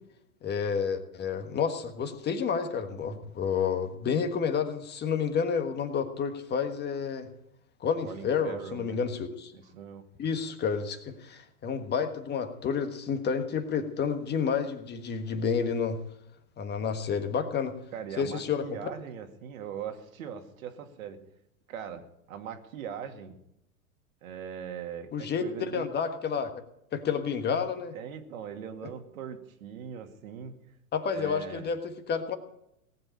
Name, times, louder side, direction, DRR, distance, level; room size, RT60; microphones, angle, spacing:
voice 1, 0.4-7.3 7.8-9.5 10.2-16.0 16.6-17.7 18.2-18.6 25.1-25.4 25.7-26.5 26.9-27.9 30.9-32.4, left 6 dB, 20° left, 7 dB, 1.5 m, -30 dB
voice 2, 8.0-9.0 9.5-10.0 17.9-21.2 21.7-23.4 24.2-25.9 27.9-30.5 31.1-31.7, right 8 dB, 65° right, 5 dB, 2.4 m, -40 dB
18.5 x 7.8 x 9.0 m, 0.79 s
hypercardioid pair, 120°, 45 cm